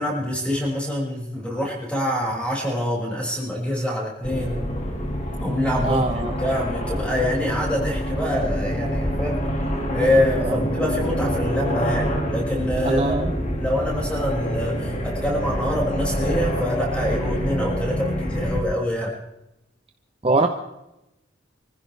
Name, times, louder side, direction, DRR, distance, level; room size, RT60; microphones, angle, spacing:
voice 1, 0.0-4.7 5.4-9.4 9.9-13.2 13.6-19.1, left 1 dB, 5° left, -3 dB, 5.9 m, -25 dB
sound 1, 4.2-18.6, equal, 40° left, 2.3 m, -26 dB
voice 2, 5.8-6.3 10.4-10.6 12.8-13.3 20.2-20.5, right 2 dB, 30° right, 4 dB, 1.0 m, -22 dB
25.0 x 15.5 x 3.4 m, 0.90 s
head